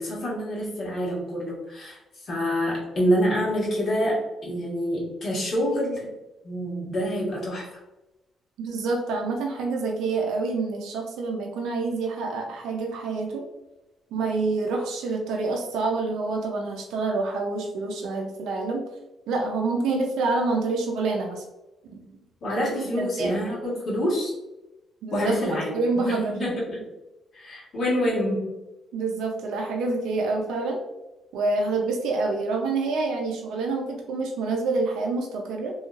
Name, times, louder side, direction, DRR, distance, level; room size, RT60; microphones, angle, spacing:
voice 1, 0.0-2.0 2.3-6.1 6.4-7.7 22.4-24.3 25.1-25.7 26.0-26.8 27.3-28.5, equal, 55° left, -4 dB, 1.4 m, -26 dB
voice 2, 8.6-13.4 14.1-18.8 19.3-21.4 21.9-22.1 23.0-23.4 25.0-25.4 25.7-26.3 28.9-30.8 31.3-35.7, right 3 dB, 85° right, 0 dB, 0.5 m, -27 dB
3.1 x 2.7 x 2.4 m, 1.0 s
cardioid pair, 90°, 0 cm